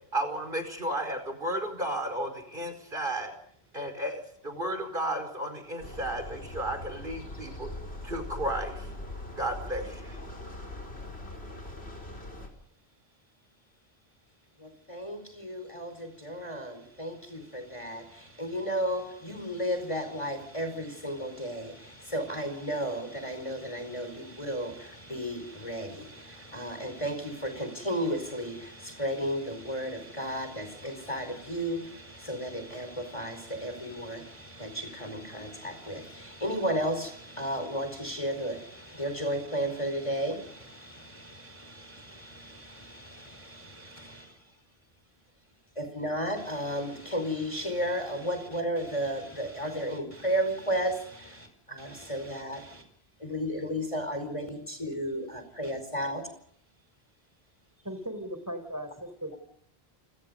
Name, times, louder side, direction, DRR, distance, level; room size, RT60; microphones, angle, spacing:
voice 1, 0.1-3.3 3.7-7.7 8.0-8.9 9.4-10.2, right 1 dB, 55° right, 5.1 m, -33 dB
sound 1, 5.8-12.5, left 1 dB, 90° left, 5.2 m, -41 dB
voice 2, 14.6-44.4 45.8-52.8 53.2-56.3, equal, 30° left, 5.1 m, -34 dB
voice 3, 57.8-59.4, equal, 15° right, 4.4 m, -37 dB
29.5 x 26.0 x 5.4 m
omnidirectional pair, 1.0 m